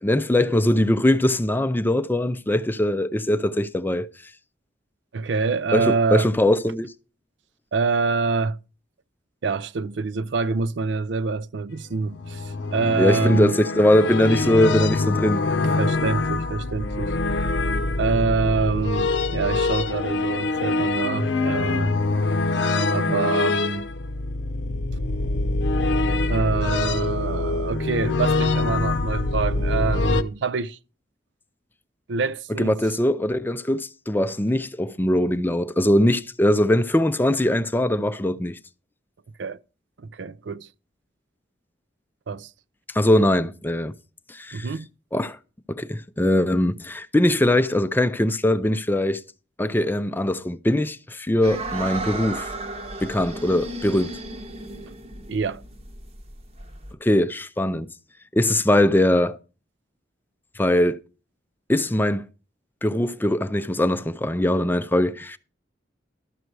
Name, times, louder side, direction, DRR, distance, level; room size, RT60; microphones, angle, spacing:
voice 1, 0.0-4.1 5.7-6.9 13.0-15.4 32.6-38.6 42.9-43.9 44.3-44.7 45.1-45.4 45.7-49.2 49.6-52.5 53.0-54.2 57.0-57.9 58.3-59.4 60.6-61.0 61.7-62.3 62.8-65.4, left 1 dB, 10° left, 0.4 m, -21 dB
voice 2, 5.1-6.3 7.7-8.6 9.4-12.4 12.7-13.6 15.8-17.1 18.0-22.0 22.9-23.9 26.3-30.8 32.1-32.7 39.4-39.6 40.1-40.7 42.3-42.5 44.5-44.9 55.3-55.6, right 4 dB, 70° right, 0.5 m, -25 dB
sound 1, 12.0-30.2, left 3 dB, 75° left, 0.7 m, -24 dB
sound 2, 51.4-56.9, right 2 dB, 35° right, 0.9 m, -34 dB
12.5 x 6.5 x 4.7 m
head